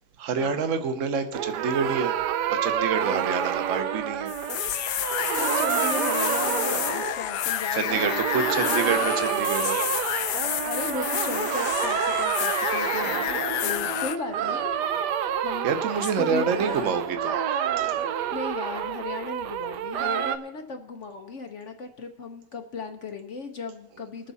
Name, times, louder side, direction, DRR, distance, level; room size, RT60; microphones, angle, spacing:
voice 1, 0.2-2.1 2.5-4.3 7.7-9.8 13.8-14.0 15.6-17.3 17.8-18.0, right 6 dB, 45° right, 8 dB, 1.1 m, -27 dB
sound 1, 1.3-7.6 7.8-20.4, right 9 dB, 70° right, 1.0 m, -28 dB
sound 2, 4.3-14.2, left 11 dB, 75° left, 1.3 m, -29 dB
voice 2, 5.2-9.5 10.6-14.7 15.4-15.7 16.0-17.0 18.1-24.3, left 4 dB, 60° left, 6 dB, 0.8 m, -36 dB
21.5 x 7.2 x 4.1 m, 0.87 s
omnidirectional pair, 2.3 m